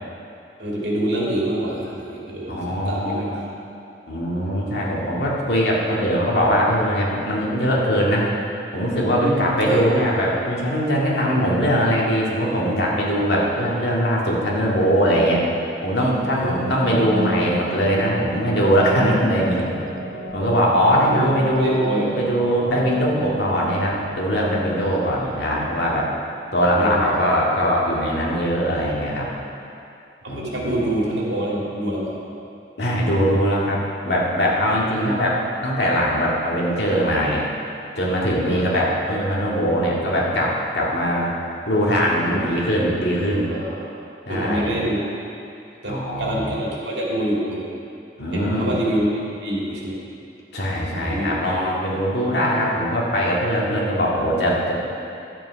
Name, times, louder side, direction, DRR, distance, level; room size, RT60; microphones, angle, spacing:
voice 1, 0.6-3.4 4.6-5.1 9.2-10.0 16.3-17.2 20.9-22.2 24.8-25.0 26.7-27.1 30.2-32.1 34.9-35.2 38.4-38.7 42.1-42.4 42.8-42.9 43.5-43.9 44.3-45.0 45.8-47.7 48.3-50.0 51.0-51.3 51.6-51.7, right 1 dB, 75° right, -4 dB, 2.3 m, -26 dB
voice 2, 2.5-3.4 4.1-8.3 8.7-15.4 15.8-19.7 20.3-26.1 26.5-29.3 30.3-30.8 32.8-35.3 35.6-37.5 37.9-41.3 41.7-43.5 44.3-44.8 45.9-46.5 48.2-48.7 50.5-54.7, equal, 65° left, -4 dB, 2.0 m, -21 dB
sound 1, 16.5-24.8, right 2 dB, 55° right, 0.9 m, -32 dB
11.0 x 7.9 x 5.1 m, 2.6 s
head